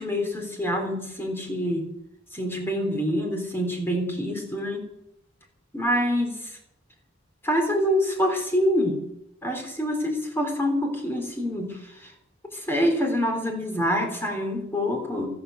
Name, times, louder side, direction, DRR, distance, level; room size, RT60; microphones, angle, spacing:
voice 1, 0.0-1.9 2.3-4.9 5.7-6.5 7.4-9.0 9.4-12.1 12.5-15.3, equal, 10° left, 2 dB, 3.8 m, -26 dB
13.5 x 12.5 x 8.0 m, 0.81 s
head